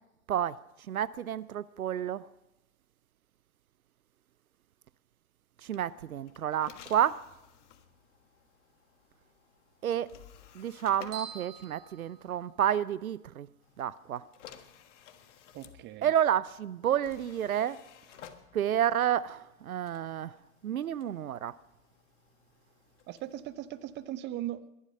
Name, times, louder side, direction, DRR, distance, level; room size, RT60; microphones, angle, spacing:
voice 1, 0.9-2.3 5.6-7.2 9.8-10.1 10.5-13.5 13.8-14.3 16.0-17.8 18.5-20.4 20.6-21.6, right 10 dB, 80° right, 0.6 m, -30 dB
sound 1, 5.6-12.5 13.6-24.1, left 9 dB, 55° left, 1.5 m, -56 dB
sound 2, 11.1-12.9, right 7 dB, 55° right, 6.0 m, -47 dB
voice 2, 15.5-16.1 23.1-24.6, right 13 dB, 25° right, 0.7 m, -39 dB
21.5 x 11.0 x 5.3 m
figure-of-eight pair, 105°, 42 cm